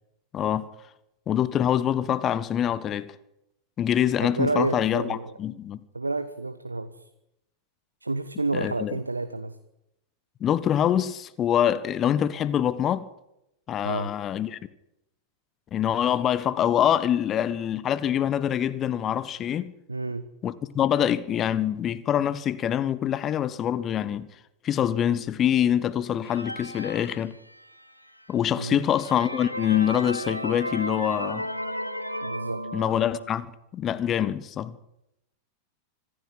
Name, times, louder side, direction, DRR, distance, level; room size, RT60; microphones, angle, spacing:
voice 1, 0.3-0.7 1.3-3.2 3.8-5.8 8.5-9.0 10.4-13.1 13.7-14.6 15.7-19.7 20.4-24.3 24.6-27.3 28.3-31.5 32.7-33.5 33.7-34.8, left 10 dB, 30° left, 1.4 m, -25 dB
voice 2, 4.2-5.4 5.9-7.1 8.0-9.6 13.8-14.1 19.9-20.3 28.5-28.8 32.2-32.6, right 3 dB, 80° right, 1.2 m, -30 dB
sound 1, 26.3-27.9 28.4-28.5 28.9-33.4, equal, 90° left, 2.1 m, -34 dB
25.5 x 16.0 x 9.2 m
figure-of-eight pair, 90°, 0 cm